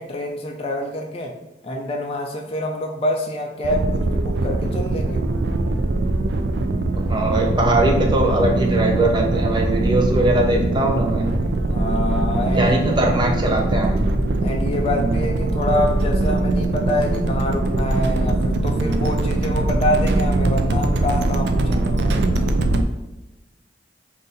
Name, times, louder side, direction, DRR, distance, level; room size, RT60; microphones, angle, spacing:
voice 1, 0.0-1.3 1.6-5.2 11.7-12.9 14.4-22.6, left 1 dB, 35° left, 1 dB, 0.4 m, -26 dB
sound 1, 3.6-22.8, right 2 dB, 70° right, 0.4 m, -21 dB
voice 2, 7.1-11.3 12.6-13.9, right 1 dB, 25° right, 1 dB, 0.6 m, -20 dB
3.8 x 2.6 x 3.9 m, 0.97 s
head